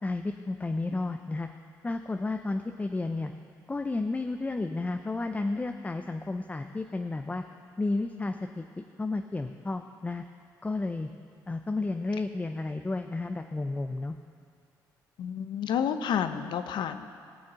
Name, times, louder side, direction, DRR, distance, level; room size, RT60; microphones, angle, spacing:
voice 1, 0.0-1.5 1.8-3.3 3.7-7.4 7.8-10.2 10.6-11.1 11.5-14.2, left 3 dB, 20° left, 6 dB, 0.6 m, -32 dB
voice 2, 15.2-17.1, left 8 dB, 70° left, 10 dB, 0.7 m, -30 dB
18.5 x 6.4 x 5.7 m, 2.3 s
supercardioid pair, 70°, 8 cm